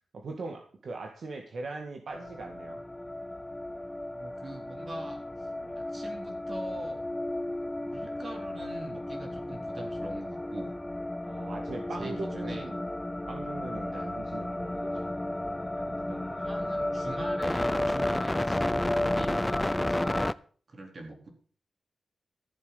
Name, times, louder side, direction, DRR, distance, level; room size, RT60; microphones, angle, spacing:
voice 1, 0.1-2.8 5.6-5.8 11.2-12.8 13.3-15.1 15.7-16.7, right 3 dB, 60° right, 3 dB, 2.0 m, -41 dB
sound 1, 2.1-20.3, left 1 dB, 10° left, 0.5 m, -32 dB
voice 2, 4.1-5.5 5.8-7.0 7.8-10.7 12.0-12.7 13.9-14.1 16.4-20.2 20.7-21.3, right 2 dB, 35° right, 3 dB, 4.1 m, -44 dB
14.0 x 7.7 x 6.9 m, 0.43 s
wide cardioid pair, 145°, 0 cm